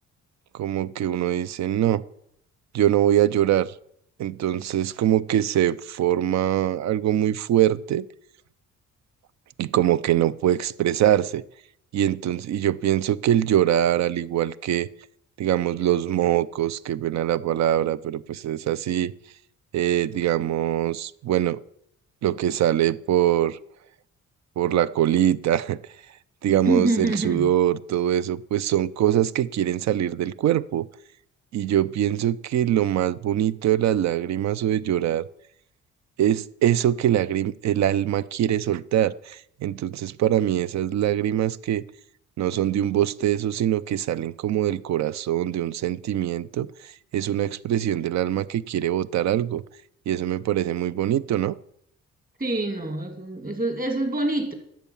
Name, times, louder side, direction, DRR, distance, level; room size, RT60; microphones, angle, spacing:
voice 1, 0.5-2.0 2.7-3.7 4.2-8.1 9.6-11.4 11.9-14.9 15.4-19.1 19.7-21.6 22.2-23.6 24.6-25.8 26.4-30.9 31.5-35.2 36.2-41.8 42.4-49.6 50.1-51.5, right 11 dB, 65° right, 18 dB, 0.6 m, -23 dB
voice 2, 26.6-27.5 52.4-54.5, right 2 dB, 30° right, 6 dB, 2.5 m, -25 dB
10.5 x 7.4 x 7.0 m, 0.73 s
cardioid pair, 90°, 30 cm